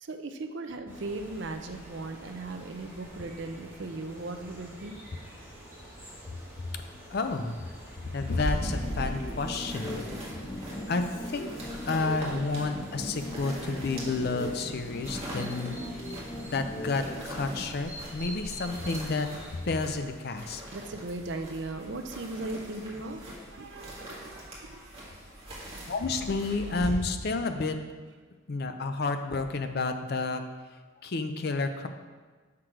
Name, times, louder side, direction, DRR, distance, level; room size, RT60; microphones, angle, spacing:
voice 1, 0.0-5.0 11.5-11.6 20.7-23.2 23.5-24.9 25.2-25.4, right 2 dB, 55° right, 6 dB, 0.5 m, -38 dB
sound 1, 0.9-19.6, equal, 10° right, 1.9 m, -47 dB
voice 2, 7.1-7.7 8.1-10.1 10.9-11.5 11.9-15.8 16.5-19.3 19.6-20.6 25.9-27.8 28.5-30.4 31.0-31.9, left 3 dB, 50° left, 7 dB, 0.5 m, -30 dB
sound 2, 8.3-26.9, equal, 30° right, 1.5 m, -41 dB
sound 3, 8.5-17.6, left 1 dB, 20° left, 1.0 m, -39 dB
6.3 x 5.9 x 4.6 m, 1.4 s
head